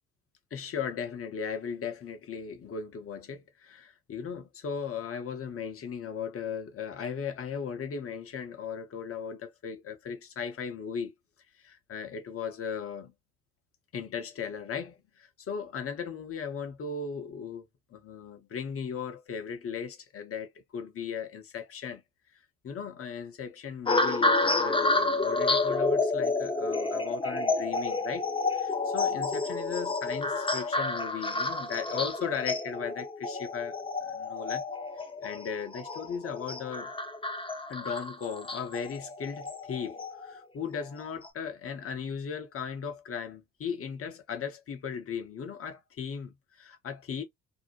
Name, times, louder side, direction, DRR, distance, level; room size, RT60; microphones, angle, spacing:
voice 1, 0.5-11.1 11.6-13.1 13.9-17.6 17.9-22.0 22.6-34.6 35.2-36.9 37.7-47.2, left 6 dB, 45° left, 0.9 m, -37 dB
sound 1, 23.9-40.3 41.0-41.3, left 3 dB, 15° left, 0.9 m, -30 dB
2.7 x 2.1 x 2.8 m
hypercardioid pair, 50°, 31 cm